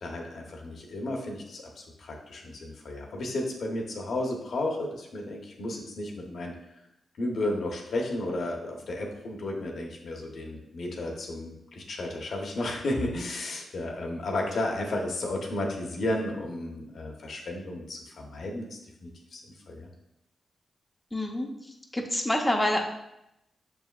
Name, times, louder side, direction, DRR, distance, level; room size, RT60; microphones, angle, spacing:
voice 1, 0.0-6.5 7.2-19.4 19.7-19.9, left 1 dB, 70° left, 0 dB, 0.9 m, -33 dB
voice 2, 21.1-22.8, left 1 dB, 10° left, 1 dB, 0.7 m, -28 dB
6.3 x 3.5 x 2.4 m, 0.83 s
cardioid pair, 55°, 0 cm